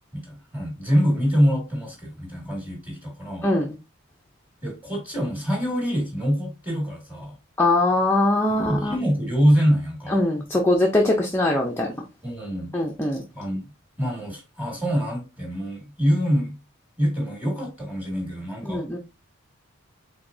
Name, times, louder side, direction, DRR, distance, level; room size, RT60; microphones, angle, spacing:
voice 1, 0.1-3.5 4.6-7.3 8.5-10.2 12.2-12.7 13.3-13.7 14.0-16.6 17.0-18.8, equal, 10° right, 1.9 m, -25 dB
voice 2, 3.4-3.7 7.6-9.0 10.1-11.9 12.7-13.2 18.7-19.0, left 1 dB, 10° left, 0.5 m, -21 dB
5.0 x 3.5 x 2.6 m
head